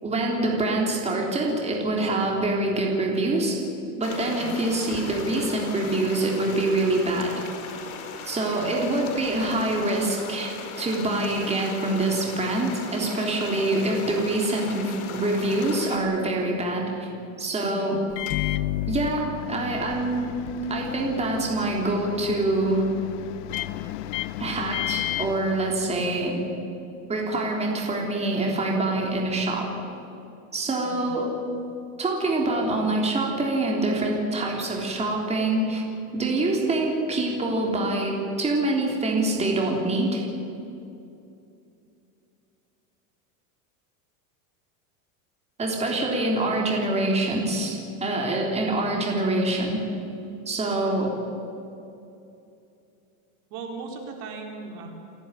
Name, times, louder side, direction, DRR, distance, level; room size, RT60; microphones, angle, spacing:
voice 1, 0.0-3.6 4.0-7.4 8.2-17.1 17.4-18.0 18.9-20.4 20.7-22.8 24.4-26.4 27.1-29.7 30.5-31.3 32.0-35.8 36.1-40.2 45.6-49.8 50.5-51.2, right 2 dB, 15° right, -1 dB, 3.4 m, -25 dB
sound 1, 4.0-16.0, left 6 dB, 80° left, 4.8 m, -38 dB
Microwave oven, 18.1-26.3, left 14 dB, 60° left, 0.8 m, -32 dB
voice 2, 53.5-54.9, right 4 dB, 55° right, 2 dB, 4.2 m, -38 dB
29.0 x 11.0 x 9.9 m, 2.7 s
supercardioid pair, 140°, 42 cm